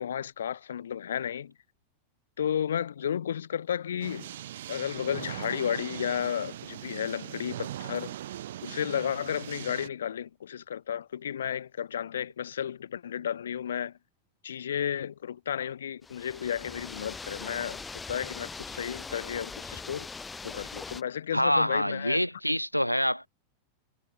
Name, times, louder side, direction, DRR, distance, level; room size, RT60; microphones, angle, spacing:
voice 1, 0.0-1.5 2.4-4.3 4.7-8.1 8.6-14.0 14.4-17.8 18.1-20.1 20.4-22.2, left 9 dB, 65° left, 3.3 m, -33 dB
sound 1, 4.0-9.9, right 12 dB, 60° right, 3.4 m, -40 dB
sound 2, 16.0-21.0, left 4 dB, 15° left, 0.9 m, -41 dB
voice 2, 21.3-23.3, equal, 90° left, 0.6 m, -26 dB
figure-of-eight pair, 90°, 0 cm